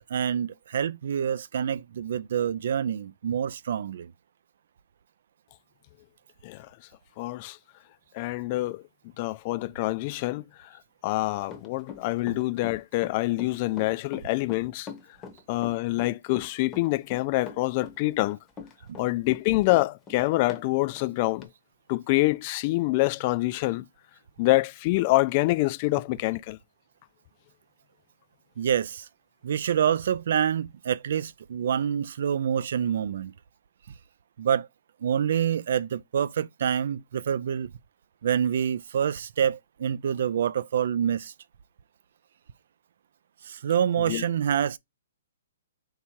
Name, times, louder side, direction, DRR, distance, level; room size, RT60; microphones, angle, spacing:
voice 1, 0.1-4.1 18.9-19.1 28.6-29.1 29.4-33.3 34.4-34.7 35.0-37.7 38.2-41.3 43.4-44.8, right 8 dB, 65° right, 0.3 m, -27 dB
voice 2, 7.2-7.6 8.1-8.8 9.2-10.4 11.0-14.9 15.5-18.4 19.0-21.5 21.9-23.9 24.4-26.6 44.0-44.2, left 20 dB, 35° left, 0.3 m, -26 dB
Run, 11.4-20.7 21.0-21.1 21.4-21.5, left 5 dB, 20° left, 0.8 m, -42 dB
3.5 x 2.8 x 4.4 m
hypercardioid pair, 145°, 0 cm